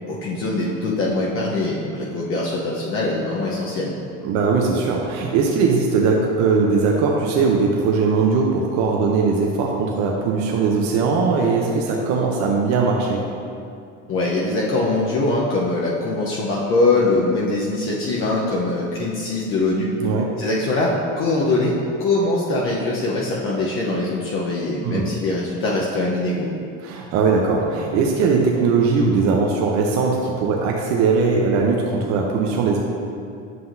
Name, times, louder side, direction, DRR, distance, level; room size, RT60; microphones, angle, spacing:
voice 1, 0.1-3.9 14.1-19.9 20.4-21.7 22.0-26.5, left 2 dB, 45° left, -4 dB, 0.9 m, -22 dB
voice 2, 4.2-13.2 20.0-20.3 24.8-25.0 26.8-32.8, right 4 dB, 65° right, -1 dB, 0.7 m, -20 dB
7.6 x 5.7 x 2.7 m, 2.5 s
supercardioid pair, 115°, 29 cm